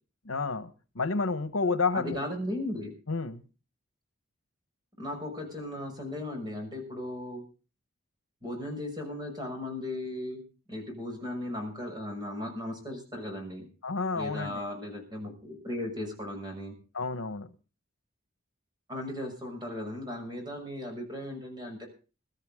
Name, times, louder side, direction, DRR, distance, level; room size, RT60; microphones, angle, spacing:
voice 1, 0.2-2.2 3.1-3.4 13.8-14.6 16.9-17.5, left 4 dB, 75° left, 12 dB, 1.1 m, -30 dB
voice 2, 1.9-2.9 5.0-7.4 8.4-10.4 10.7-13.7 14.1-16.7 18.9-21.9, left 1 dB, 20° right, 4 dB, 6.2 m, -36 dB
22.0 x 13.5 x 3.6 m, 0.34 s
head